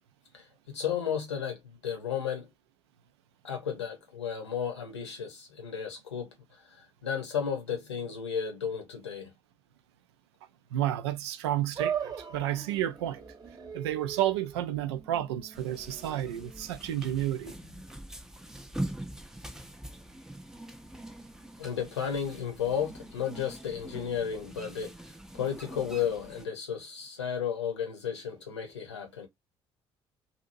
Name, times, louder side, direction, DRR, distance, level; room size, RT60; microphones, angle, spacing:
voice 1, 0.3-2.5 3.4-9.3 21.6-25.0 25.3-29.3, left 8 dB, 80° left, 0.8 m, -33 dB
voice 2, 10.7-13.2 13.7-17.5, right 12 dB, 70° right, 0.4 m, -31 dB
sound 1, 11.8-18.2, right 8 dB, 25° right, 0.9 m, -40 dB
sound 2, 15.5-26.5, right 1 dB, 5° right, 0.6 m, -43 dB
2.8 x 2.6 x 2.6 m
figure-of-eight pair, 50°, 14 cm